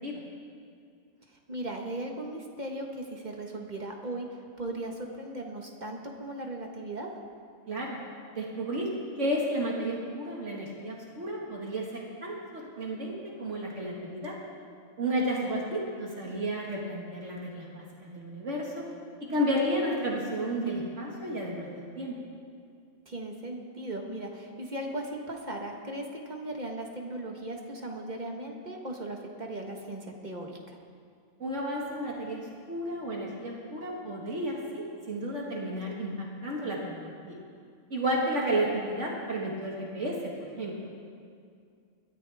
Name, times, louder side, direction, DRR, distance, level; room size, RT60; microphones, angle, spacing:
voice 1, 1.3-7.1 15.4-15.5 19.3-19.6 23.1-30.8, right 1 dB, 35° right, 1 dB, 1.4 m, -38 dB
voice 2, 7.7-8.0 8.3-8.9 9.2-14.4 15.0-17.8 18.1-18.8 19.2-22.2 31.4-32.4 32.7-37.4 37.9-40.9, right 1 dB, 60° right, -3 dB, 2.1 m, -32 dB
21.5 x 13.5 x 3.5 m, 2.3 s
omnidirectional pair, 1.4 m